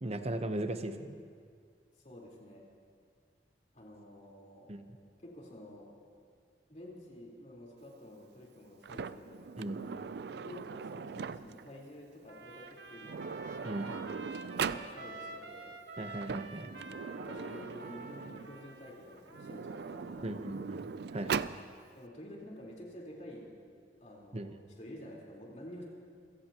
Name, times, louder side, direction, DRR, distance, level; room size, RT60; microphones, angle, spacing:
voice 1, 0.0-1.2 4.7-4.8 9.6-9.8 13.6-13.9 16.0-16.7 20.2-21.4 24.3-24.5, right 1 dB, 35° right, 8 dB, 0.9 m, -37 dB
voice 2, 2.0-2.7 3.7-4.7 5.2-5.9 6.7-9.4 10.3-13.3 14.2-15.7 16.9-20.7 21.9-23.7 24.0-25.8, left 1 dB, 45° left, -3 dB, 4.1 m, -50 dB
Sliding door, 8.8-11.7 12.7-12.8 13.0-14.9 16.0-18.5 19.3-21.6, right 6 dB, 65° right, 0.4 m, -40 dB
Trumpet, 12.3-20.4, right 2 dB, 90° right, 1.3 m, -49 dB
27.0 x 18.0 x 3.0 m, 2.1 s
head